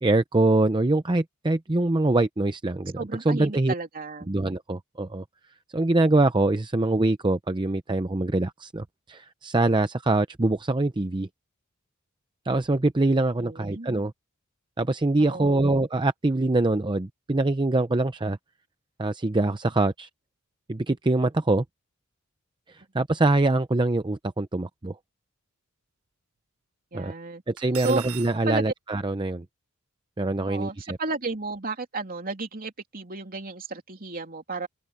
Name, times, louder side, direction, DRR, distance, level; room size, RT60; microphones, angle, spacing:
voice 1, 0.0-3.7 4.3-5.2 5.7-11.3 12.4-14.1 14.8-18.4 19.0-20.1 20.7-21.6 22.7-25.0 26.9-27.1 27.5-29.4 30.2-31.0, right 2 dB, 20° right, 0.7 m, -24 dB
voice 2, 3.0-4.3 13.4-13.9 15.2-15.7 26.9-27.4 27.8-28.0 28.5-28.6 30.5-34.7, right 3 dB, 45° right, 3.0 m, -33 dB
Cutlery silverware, 27.6-28.3, right 12 dB, 75° right, 0.7 m, -38 dB
head